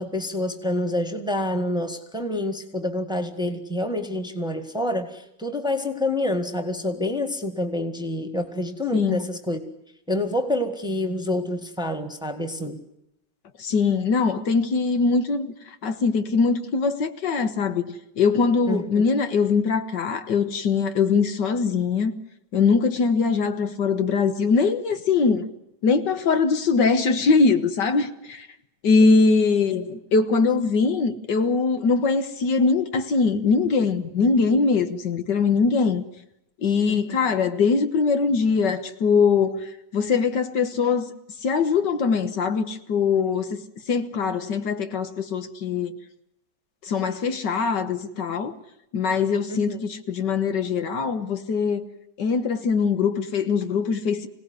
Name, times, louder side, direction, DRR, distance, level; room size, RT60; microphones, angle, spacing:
voice 1, 0.0-9.6 10.1-12.8 18.7-19.1 29.0-29.1 36.9-37.2 49.5-49.8, left 1 dB, ahead, 1.7 m, -27 dB
voice 2, 8.9-9.3 13.6-15.5 15.8-22.1 22.5-25.5 25.8-28.5 28.8-36.0 36.6-41.1 41.4-43.6 43.9-46.0 46.8-48.5 48.9-51.9 52.2-54.3, left 5 dB, 70° left, 1.9 m, -22 dB
26.0 x 18.0 x 9.6 m
omnidirectional pair, 2.0 m